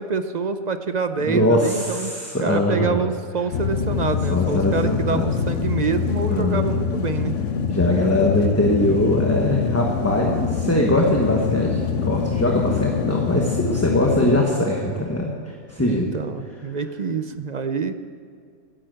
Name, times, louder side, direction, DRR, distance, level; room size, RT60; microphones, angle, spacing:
voice 1, 0.0-7.3 15.8-17.9, right 5 dB, 45° right, 9 dB, 0.6 m, -26 dB
voice 2, 1.2-3.0 4.3-5.3 6.3-6.8 7.7-15.3 15.7-16.1, left 1 dB, 15° left, -1 dB, 1.2 m, -21 dB
sound 1, 3.5-14.4, left 7 dB, 80° left, 1.1 m, -25 dB
13.0 x 10.5 x 7.7 m, 2.1 s
omnidirectional pair, 1.2 m